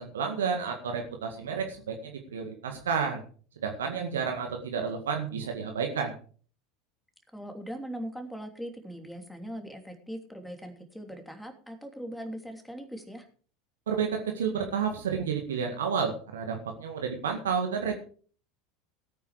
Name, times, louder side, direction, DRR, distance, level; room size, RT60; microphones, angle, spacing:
voice 1, 0.0-3.2 3.6-6.1 13.9-17.9, right 6 dB, 70° right, 4 dB, 1.9 m, -31 dB
voice 2, 7.3-13.3, equal, ahead, 4 dB, 3.0 m, -40 dB
17.0 x 9.2 x 4.8 m, 0.42 s
figure-of-eight pair, 75°, 0 cm